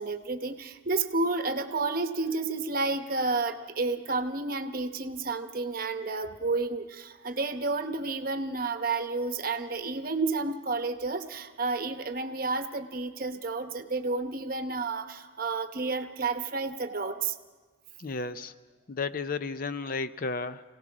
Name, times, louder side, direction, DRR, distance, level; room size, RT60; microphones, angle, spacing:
voice 1, 0.0-17.4, right 3 dB, 45° right, 8 dB, 0.9 m, -31 dB
voice 2, 18.0-18.5 18.9-20.6, left 4 dB, 45° left, 12 dB, 0.5 m, -33 dB
25.0 x 17.5 x 6.1 m, 1.3 s
head